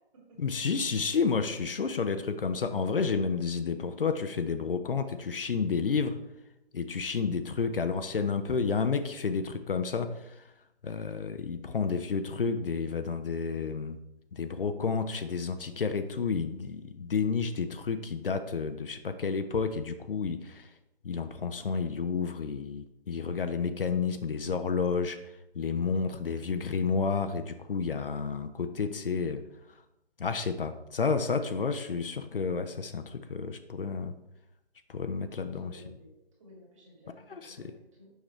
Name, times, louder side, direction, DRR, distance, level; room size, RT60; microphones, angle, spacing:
voice 1, 0.4-6.2 6.7-10.4 10.8-14.0 14.3-20.7 21.0-25.2 25.5-29.4 30.2-34.1 34.9-35.8 37.3-37.7, left 5 dB, 60° left, 9 dB, 0.6 m, -30 dB
voice 2, 35.3-36.1 36.4-38.1, left 1 dB, 30° right, -3 dB, 2.3 m, -54 dB
6.5 x 5.9 x 3.2 m, 0.88 s
hypercardioid pair, 165°, 32 cm